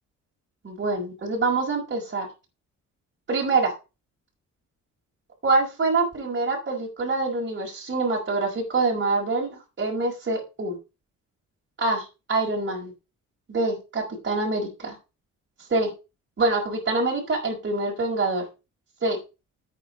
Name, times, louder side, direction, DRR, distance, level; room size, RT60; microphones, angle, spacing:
voice 1, 0.6-2.3 3.3-3.7 5.4-10.8 11.8-12.9 13.5-15.0 15.6-15.9 16.4-18.4 19.0-19.2, right 3 dB, 40° right, -1 dB, 5.5 m, -25 dB
9.2 x 9.0 x 5.2 m, 0.29 s
cardioid pair, 90°, 30 cm